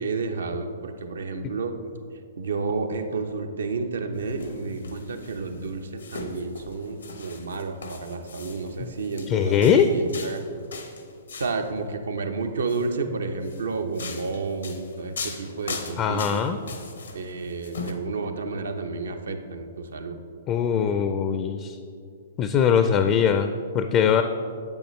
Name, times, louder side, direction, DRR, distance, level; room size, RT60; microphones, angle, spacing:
voice 1, 0.0-1.8 2.4-10.4 11.4-16.4 17.1-20.2, right 4 dB, 80° right, 6 dB, 0.7 m, -31 dB
sound 1, 4.1-11.7 12.5-12.9 13.4-17.9, left 4 dB, 85° left, 0.9 m, -39 dB
voice 2, 9.3-9.9 16.0-16.6 20.5-21.8 22.4-23.5 23.7-24.2, left 8 dB, 35° left, 8 dB, 0.4 m, -21 dB
8.7 x 8.1 x 3.2 m, 2.4 s
hypercardioid pair, 120°, 0 cm